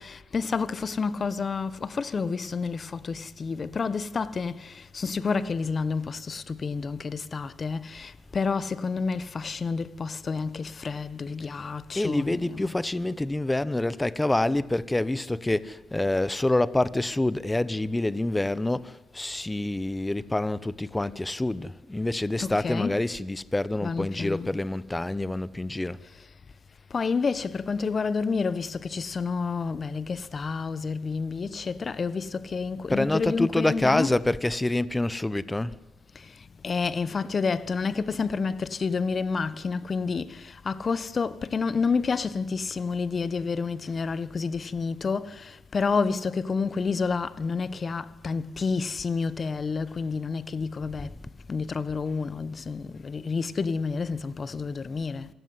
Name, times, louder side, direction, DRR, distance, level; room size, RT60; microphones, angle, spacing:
voice 1, 0.0-12.7 22.4-23.0 23.8-24.5 26.0-26.3 26.9-34.2 36.1-51.1 51.5-55.3, left 5 dB, 40° left, 1.3 m, -29 dB
voice 2, 11.9-26.0 32.9-35.8 51.0-51.1, left 2 dB, 10° left, 1.1 m, -27 dB
27.0 x 17.5 x 9.7 m
cardioid pair, 90°, 0 cm